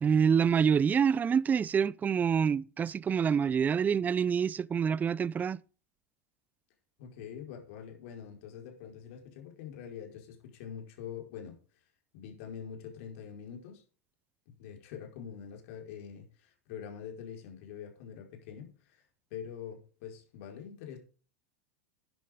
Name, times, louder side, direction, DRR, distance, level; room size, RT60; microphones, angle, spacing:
voice 1, 0.0-5.6, right 7 dB, 20° right, 0.4 m, -26 dB
voice 2, 7.0-11.6 12.1-13.8 14.5-19.0 19.3-21.0, left 8 dB, 60° left, 4.7 m, -45 dB
12.0 x 10.5 x 3.7 m
hypercardioid pair, 95°, 8 cm